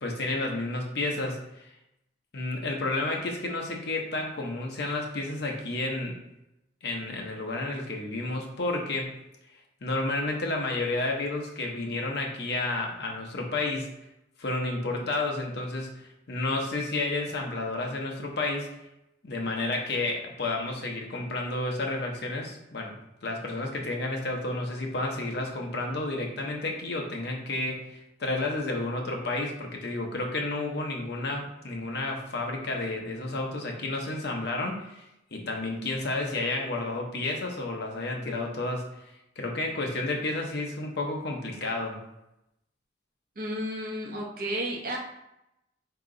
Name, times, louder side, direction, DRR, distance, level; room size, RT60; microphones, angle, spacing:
voice 1, 0.0-1.7 2.3-6.2 6.8-9.2 9.8-13.9 14.4-18.7 19.2-23.0 23.2-35.0 35.3-38.9 39.4-42.0, left 2 dB, 60° left, 0 dB, 0.8 m, -31 dB
voice 2, 43.4-45.0, right 1 dB, 50° right, -1 dB, 1.0 m, -32 dB
4.8 x 2.9 x 3.7 m, 0.87 s
head